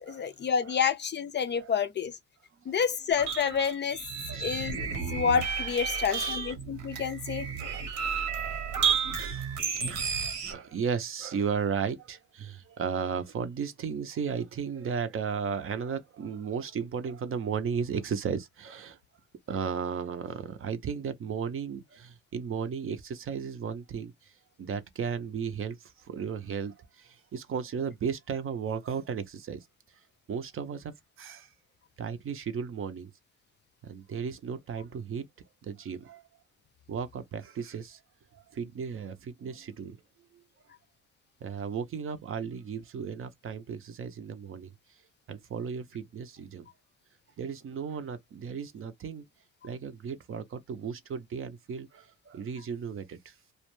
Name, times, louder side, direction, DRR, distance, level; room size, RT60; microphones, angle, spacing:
voice 1, 0.1-2.2 2.7-4.0 4.4-4.8 5.1-7.5, left 7 dB, 35° left, 0.4 m, -28 dB
sound 1, 3.1-10.5, right 6 dB, 80° right, 1.0 m, -32 dB
voice 2, 5.9-6.4 7.6-8.1 9.1-19.0 19.5-24.3 24.6-29.6 30.3-31.5 32.0-33.1 33.8-35.2 35.6-36.2 36.9-38.0 38.3-40.0 41.4-44.7 45.3-46.7 47.4-49.2 49.6-53.3, right 6 dB, 45° right, 0.5 m, -35 dB
2.3 x 2.1 x 3.0 m
cardioid pair, 90°, 30 cm